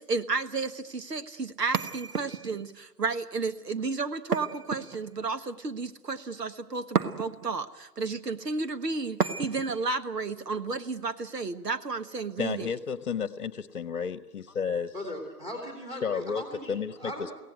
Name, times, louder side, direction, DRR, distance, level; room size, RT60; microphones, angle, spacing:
voice 1, 0.0-12.7, right 4 dB, 90° right, 9 dB, 1.6 m, -32 dB
sound 1, 1.7-2.7 4.3-5.3 6.9-7.6 9.2-9.8, right 6 dB, 70° right, 1.4 m, -31 dB
voice 2, 12.4-14.9 16.0-17.3, left 6 dB, 50° left, 14 dB, 1.0 m, -32 dB
voice 3, 14.9-17.3, equal, 10° right, 0 dB, 3.4 m, -39 dB
23.5 x 17.5 x 9.3 m, 1.0 s
hypercardioid pair, 150°, 47 cm